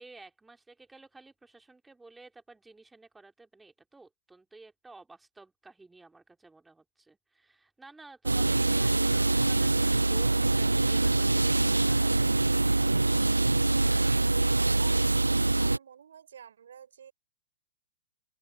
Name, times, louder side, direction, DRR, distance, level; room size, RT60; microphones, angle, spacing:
voice 1, 0.0-12.4, right 3 dB, 5° right, 2.6 m, -53 dB
sound 1, 8.3-15.8, right 2 dB, 90° right, 0.4 m, -24 dB
voice 2, 14.6-15.0 15.3-17.1, right 8 dB, 65° right, 3.3 m, -52 dB
open air
figure-of-eight pair, 110°, 0 cm